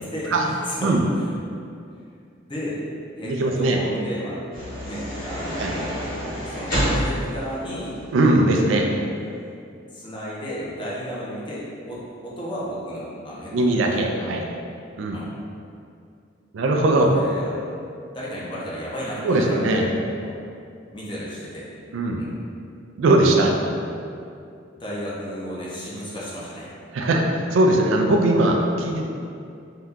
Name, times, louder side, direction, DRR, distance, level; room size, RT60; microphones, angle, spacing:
voice 1, 0.1-1.3 2.5-2.8 3.2-4.4 4.8-6.0 6.4-8.0 9.9-14.0 15.1-15.3 17.0-17.6 18.1-19.9 20.2-20.3 20.9-21.7 22.2-22.3 23.7-24.0 24.7-26.7, equal, 25° left, -7 dB, 0.6 m, -33 dB
voice 2, 3.2-3.8 5.6-5.7 8.1-8.9 13.5-14.4 15.0-15.2 16.5-17.1 19.2-19.9 21.9-22.2 23.0-23.5 26.9-27.2 27.5-29.1, right 2 dB, 80° right, 1 dB, 0.4 m, -19 dB
sound 1, 4.5-8.3, equal, 50° left, 1.3 m, -28 dB
2.8 x 2.3 x 3.5 m, 2.5 s
head